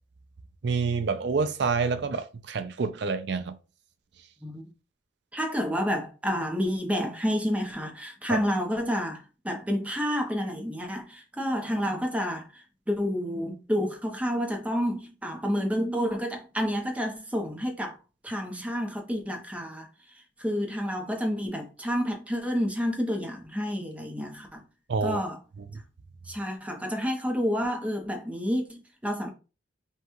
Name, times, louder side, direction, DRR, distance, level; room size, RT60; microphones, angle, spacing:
voice 1, 0.6-3.6 8.3-8.4 24.9-25.2, right 4 dB, 60° right, 0.5 m, -27 dB
voice 2, 5.3-18.0 18.2-19.9 20.4-24.6 25.0-25.4 26.3-29.3, equal, 5° right, 0.8 m, -29 dB
5.4 x 2.3 x 3.0 m
head